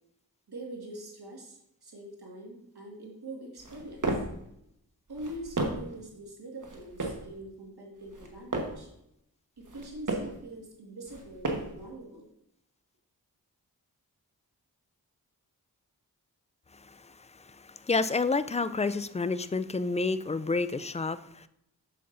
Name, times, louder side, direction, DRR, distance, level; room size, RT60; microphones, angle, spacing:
voice 1, 0.5-4.2 5.1-8.9 9.6-12.3, right 1 dB, 75° right, -1 dB, 1.8 m, -44 dB
sound 1, 3.6-4.4 5.1-6.0 6.6-7.3 8.0-8.9 9.6-10.4 11.1-11.9, right 2 dB, 50° right, 1.3 m, -34 dB
voice 2, 16.8-21.5, left 3 dB, 20° left, 14 dB, 0.3 m, -30 dB
7.6 x 6.8 x 2.6 m, 0.77 s
cardioid pair, 45°, 39 cm